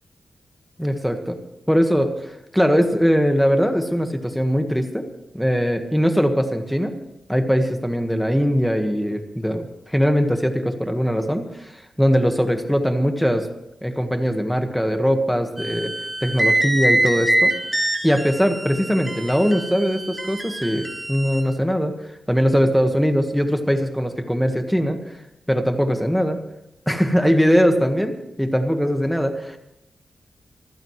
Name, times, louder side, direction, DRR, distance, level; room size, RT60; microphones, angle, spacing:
voice 1, 0.8-1.4 1.7-5.0 5.3-6.9 7.3-13.5 13.8-15.9 16.2-17.5 18.0-21.9 22.3-25.0 25.5-26.4 26.9-29.6, equal, ahead, 6 dB, 1.5 m, -21 dB
sound 1, 15.6-21.4, right 1 dB, 15° right, 2.3 m, -24 dB
25.0 x 15.5 x 3.2 m, 0.88 s
wide cardioid pair, 115°, 0 cm